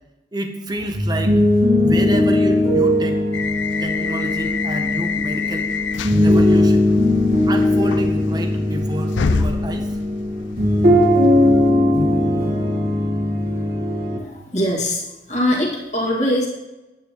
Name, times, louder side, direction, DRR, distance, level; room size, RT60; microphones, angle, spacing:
voice 1, 0.3-1.4 1.7-3.2 3.8-5.7 6.1-6.9 7.5-9.9, right 1 dB, 20° right, 5 dB, 0.8 m, -29 dB
sound 1, 0.8-14.2, left 1 dB, 50° right, 1.4 m, -18 dB
sound 2, 3.3-11.7, left 5 dB, 85° left, 0.4 m, -28 dB
voice 2, 14.2-16.5, left 1 dB, 40° left, -3 dB, 1.9 m, -22 dB
9.1 x 8.7 x 3.0 m, 1.1 s
head